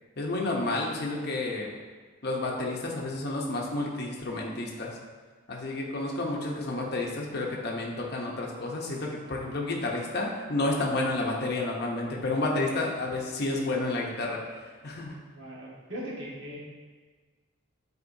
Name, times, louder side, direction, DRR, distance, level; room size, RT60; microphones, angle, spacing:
voice 1, 0.2-1.7 2.2-4.9 5.5-14.4 14.8-15.2, left 2 dB, 55° left, -2 dB, 0.8 m, -30 dB
voice 2, 15.3-16.6, equal, 65° right, -5 dB, 1.6 m, -39 dB
9.6 x 4.3 x 2.7 m, 1.4 s
head